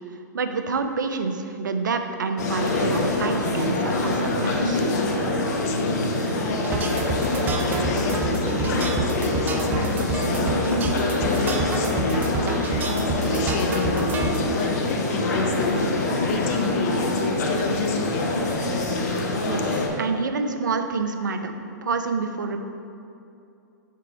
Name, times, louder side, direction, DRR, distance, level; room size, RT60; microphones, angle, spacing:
voice 1, 0.3-4.8 19.4-19.7 20.0-22.6, right 4 dB, 90° right, 7 dB, 0.5 m, -27 dB
sound 1, 2.4-19.9, left 2 dB, 65° left, 0.9 m, -24 dB
voice 2, 4.9-18.7, left 5 dB, 45° left, 5 dB, 0.6 m, -33 dB
sound 2, 6.5-14.4, right 3 dB, 20° right, 0.4 m, -28 dB
4.9 x 4.6 x 4.6 m, 2.6 s
hypercardioid pair, 125°, 10 cm